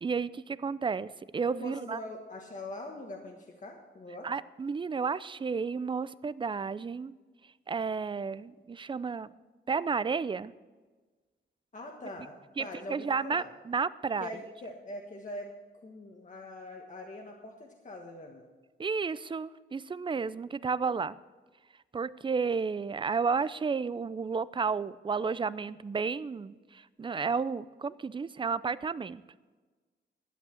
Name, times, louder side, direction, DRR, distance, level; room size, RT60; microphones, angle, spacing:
voice 1, 0.0-2.0 4.2-7.1 7.7-9.3 9.7-10.5 12.6-14.3 18.8-21.1 21.9-29.2, right 5 dB, 25° right, 17 dB, 0.4 m, -32 dB
voice 2, 1.6-4.3 11.7-13.5 14.2-15.5 15.8-18.4, left 1 dB, 40° left, 1 dB, 1.4 m, -43 dB
11.5 x 8.2 x 7.7 m, 1.3 s
wide cardioid pair, 110°, 20 cm